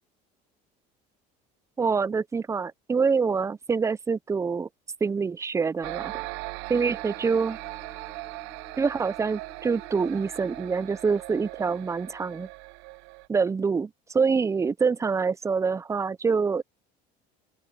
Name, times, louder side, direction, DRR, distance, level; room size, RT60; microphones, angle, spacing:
voice 1, 1.8-4.7 5.0-6.1 6.7-7.6 8.8-12.5 13.3-16.6, right 5 dB, 15° right, 0.5 m, -26 dB
sound 1, 5.8-13.3, right 25 dB, 75° right, 0.7 m, -39 dB
Bowed string instrument, 6.8-10.9, equal, ahead, 7.3 m, -53 dB
open air
supercardioid pair, 90°, 19 cm